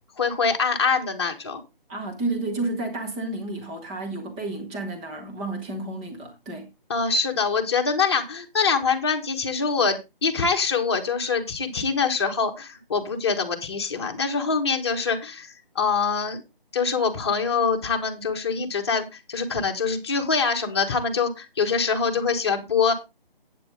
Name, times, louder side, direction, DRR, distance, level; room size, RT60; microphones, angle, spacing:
voice 1, 0.2-1.6 6.9-16.4 16.7-22.9, left 5 dB, 30° left, 1.7 m, -24 dB
voice 2, 1.9-6.7, right 2 dB, 10° right, 1.1 m, -31 dB
11.5 x 8.8 x 3.7 m
figure-of-eight pair, 160°, 29 cm